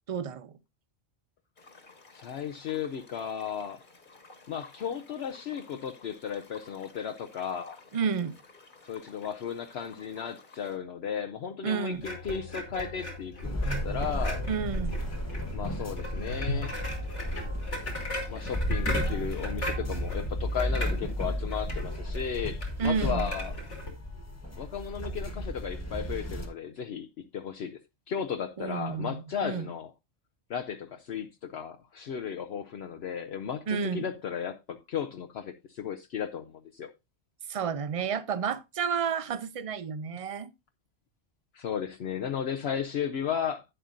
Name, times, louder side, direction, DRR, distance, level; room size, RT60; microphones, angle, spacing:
voice 1, 0.1-0.5 7.9-8.3 11.6-12.0 14.5-14.9 22.8-23.3 28.6-29.7 33.7-34.0 37.5-40.5, right 6 dB, 40° right, 0.5 m, -31 dB
sound 1, 1.6-10.8, left 3 dB, 45° left, 1.6 m, -54 dB
voice 2, 2.1-3.8 4.5-7.8 8.8-14.4 15.5-16.8 18.3-23.5 24.6-27.1 27.3-27.8 28.1-29.9 30.5-36.9 41.5-43.6, left 7 dB, 65° left, 0.9 m, -35 dB
sound 2, 12.0-23.9, left 1 dB, 90° left, 2.7 m, -37 dB
sound 3, 13.4-26.5, equal, 15° left, 1.4 m, -33 dB
11.0 x 8.9 x 2.5 m
omnidirectional pair, 1.2 m